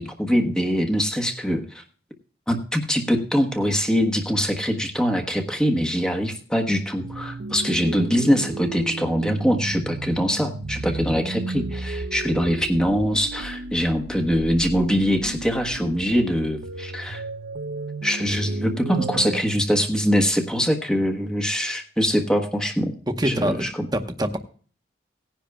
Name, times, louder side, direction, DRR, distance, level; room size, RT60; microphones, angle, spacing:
voice 1, 0.0-1.8 2.5-17.2 18.0-22.9 23.2-23.9, equal, 5° left, 3 dB, 1.1 m, -23 dB
sound 1, 7.0-19.4, right 2 dB, 70° right, 0.6 m, -34 dB
voice 2, 23.1-23.7 23.9-24.4, right 1 dB, 20° right, 6 dB, 0.9 m, -24 dB
18.5 x 10.0 x 2.3 m, 0.42 s
head